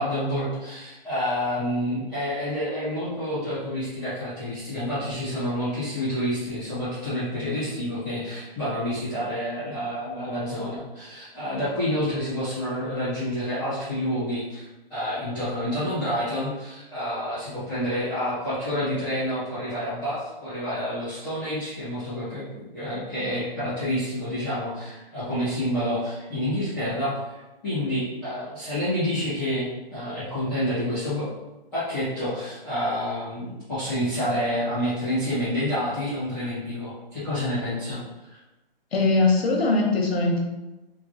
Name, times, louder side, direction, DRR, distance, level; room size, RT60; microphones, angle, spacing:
voice 1, 0.0-31.3 31.7-38.0 38.3-38.4, equal, ahead, -17 dB, 0.5 m, -28 dB
voice 2, 38.9-40.4, left 3 dB, 80° left, 1 dB, 0.8 m, -21 dB
3.0 x 2.2 x 2.6 m, 1.0 s
hypercardioid pair, 175°, 30 cm